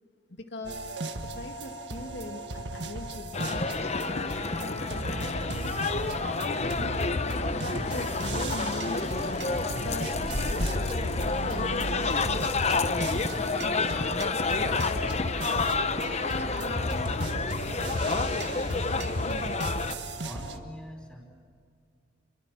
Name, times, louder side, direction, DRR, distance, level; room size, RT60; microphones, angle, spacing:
voice 1, 0.3-0.8 1.2-3.6 4.1-5.7 6.2-9.4 9.8-15.2 15.6-17.4, left 2 dB, 80° left, 4 dB, 2.0 m, -41 dB
sound 1, 0.6-20.6, right 2 dB, 75° right, 1.7 m, -37 dB
sound 2, 3.3-20.0, left 3 dB, 40° left, 0.9 m, -29 dB
voice 2, 20.0-21.3, equal, 5° left, 2 dB, 4.6 m, -44 dB
28.5 x 23.0 x 7.6 m, 2.2 s
head